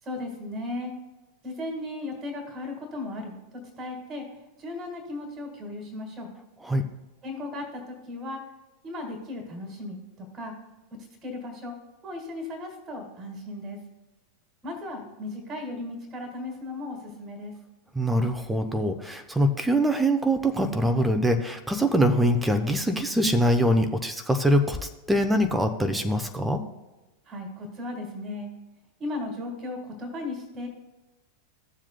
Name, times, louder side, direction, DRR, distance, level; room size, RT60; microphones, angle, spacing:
voice 1, 0.0-0.9 1.4-6.3 7.2-8.5 8.8-10.6 10.9-11.8 12.0-13.8 14.6-17.6 27.2-28.5 29.0-30.7, left 2 dB, 20° right, 2 dB, 1.8 m, -36 dB
voice 2, 17.9-26.6, equal, 5° right, 6 dB, 0.7 m, -23 dB
14.5 x 7.3 x 2.2 m, 1.1 s
figure-of-eight pair, 90°, 0 cm